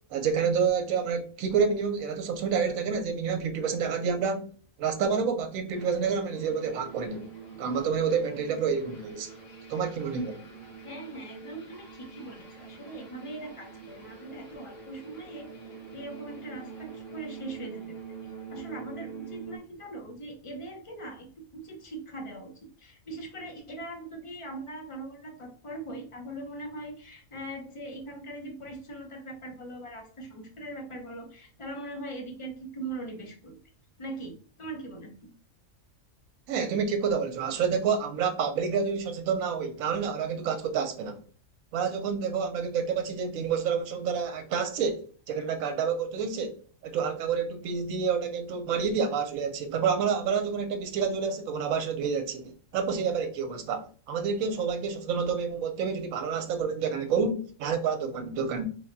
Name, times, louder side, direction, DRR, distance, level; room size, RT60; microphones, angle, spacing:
voice 1, 0.1-4.4 4.8-7.3 7.6-9.3 9.7-10.4 36.5-41.2 41.7-46.6 46.8-58.7, right 6 dB, 80° right, 1.1 m, -28 dB
sound 1, 5.7-19.6, right 5 dB, 65° left, 1.7 m, -45 dB
voice 2, 10.8-15.5 15.9-18.0 18.2-21.3 21.5-22.5 22.8-33.6 34.0-35.3, right 2 dB, 45° left, 0.4 m, -41 dB
3.4 x 2.2 x 3.8 m
omnidirectional pair, 1.5 m